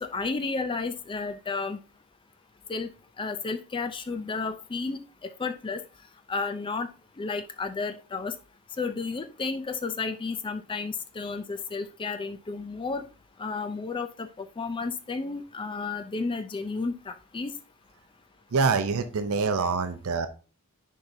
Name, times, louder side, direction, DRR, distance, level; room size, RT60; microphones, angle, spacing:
voice 1, 0.0-1.8 2.7-2.9 3.2-5.8 6.3-6.9 7.2-8.3 8.8-13.0 13.4-17.5, left 4 dB, 20° left, 10 dB, 0.4 m, -32 dB
voice 2, 18.5-20.3, right 4 dB, 70° right, 9 dB, 0.6 m, -25 dB
10.5 x 4.6 x 2.6 m, 0.35 s
head